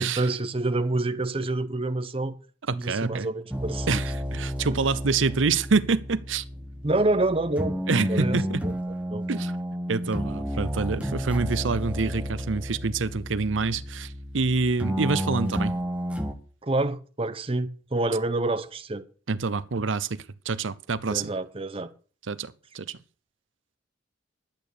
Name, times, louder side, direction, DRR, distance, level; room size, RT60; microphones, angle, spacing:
voice 1, 0.0-2.4 2.7-4.0 6.8-7.8 8.1-8.8 9.1-9.2 16.6-19.0 21.1-21.9, right 2 dB, 30° right, 0.8 m, -27 dB
voice 2, 2.7-3.3 3.9-6.4 7.9-8.6 9.3-9.5 9.9-15.7 19.3-21.3 22.3-23.0, right 4 dB, 85° right, 0.7 m, -27 dB
sound 1, 3.5-16.3, equal, 5° right, 1.3 m, -31 dB
11.5 x 8.6 x 6.7 m
head